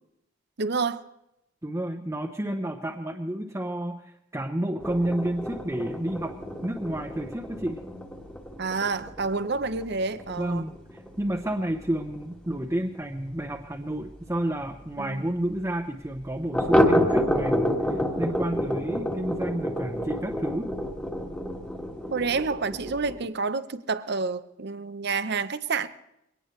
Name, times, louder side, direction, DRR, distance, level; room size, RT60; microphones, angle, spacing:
voice 1, 0.6-1.0 8.6-10.7 15.0-15.2 22.1-25.9, right 4 dB, 60° right, 0.8 m, -29 dB
voice 2, 1.6-6.4 6.6-7.8 10.4-10.7 11.2-20.7, right 1 dB, 15° right, 0.9 m, -30 dB
sound 1, 4.8-14.0 14.3-14.4 14.8-14.9 15.2-15.3 16.5-23.3, equal, 5° left, 1.6 m, -29 dB
22.5 x 18.5 x 3.2 m
head